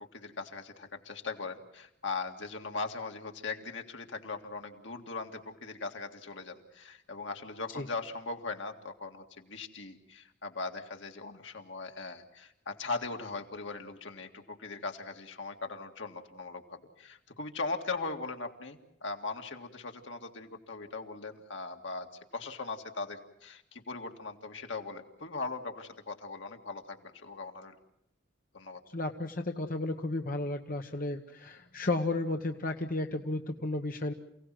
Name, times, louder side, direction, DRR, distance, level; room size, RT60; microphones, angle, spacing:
voice 1, 0.1-27.7 28.5-28.8, left 3 dB, 80° left, 4 dB, 2.2 m, -39 dB
voice 2, 28.9-34.1, left 2 dB, 50° left, 4 dB, 1.1 m, -33 dB
28.5 x 17.5 x 7.7 m, 0.80 s
head